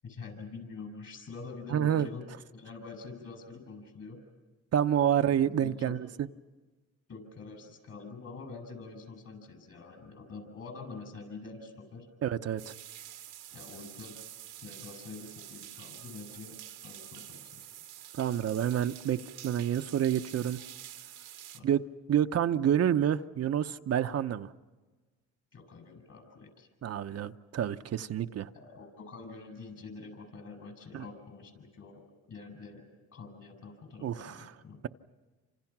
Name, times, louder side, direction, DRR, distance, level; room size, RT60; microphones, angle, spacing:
voice 1, 0.0-4.2 5.2-6.0 7.1-12.1 13.5-14.2 14.6-16.6 16.8-17.6 21.5-21.7 25.5-26.7 27.0-27.1 28.5-32.0 32.3-32.8 33.1-34.8, left 4 dB, 55° left, 6 dB, 7.7 m, -46 dB
voice 2, 1.7-2.1 4.7-6.1 12.2-12.6 18.1-20.6 21.6-21.8 22.1-24.5 26.8-28.5 30.9-31.0 34.0-34.5, right 10 dB, 55° right, 9 dB, 0.7 m, -28 dB
sound 1, 12.6-21.6, right 11 dB, 80° right, 1.2 m, -48 dB
28.5 x 27.0 x 6.0 m, 1.3 s
cardioid pair, 90°, 30 cm